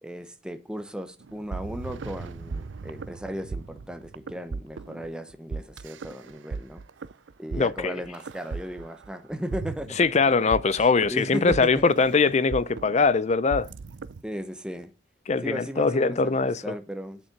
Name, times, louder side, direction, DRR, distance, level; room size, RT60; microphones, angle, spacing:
voice 1, 0.0-6.8 7.4-9.9 10.3-11.9 14.2-14.9 15.4-17.2, equal, 5° right, 0.8 m, -36 dB
sound 1, 1.2-14.2, right 4 dB, 80° right, 0.5 m, -37 dB
voice 2, 7.5-8.0 10.0-13.7 15.3-16.6, left 4 dB, 35° left, 0.5 m, -22 dB
7.6 x 7.3 x 6.4 m
head